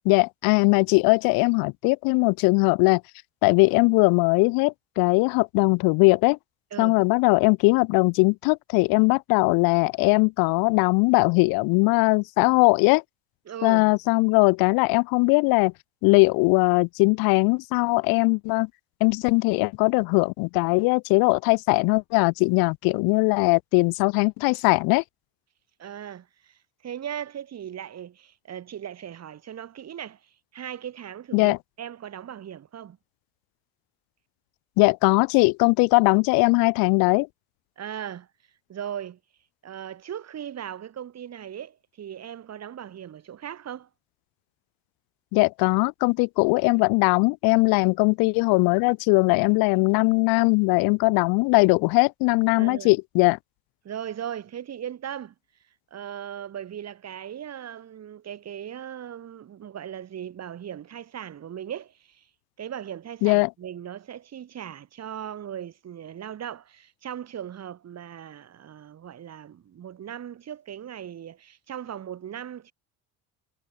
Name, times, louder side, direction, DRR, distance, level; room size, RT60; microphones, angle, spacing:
voice 1, 0.0-3.0 3.4-6.4 6.8-13.0 13.6-15.7 16.0-18.7 19.0-25.0 31.3-31.6 34.8-37.3 45.3-53.4 63.2-63.5, left 29 dB, 80° left, 0.8 m, -20 dB
voice 2, 13.5-13.8 25.8-33.0 37.8-38.3 38.7-39.2 39.6-43.9 52.5-52.9 53.8-55.3 55.9-62.3 62.6-72.7, right 9 dB, 45° right, 3.1 m, -38 dB
supercardioid pair, 85°, 35 cm